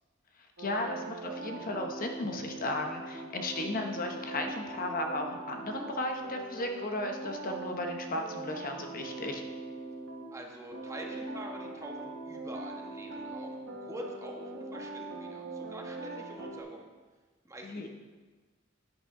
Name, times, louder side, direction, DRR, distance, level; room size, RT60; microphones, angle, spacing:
voice 1, 0.6-9.4 17.6-17.9, left 2 dB, 45° left, 4 dB, 0.9 m, -35 dB
sound 1, 0.6-10.3 10.7-16.6, right 2 dB, 70° right, 1.4 m, -41 dB
voice 2, 10.3-16.8 17.4-17.9, right 1 dB, 15° right, 0 dB, 1.2 m, -45 dB
10.5 x 9.2 x 3.7 m, 1.3 s
head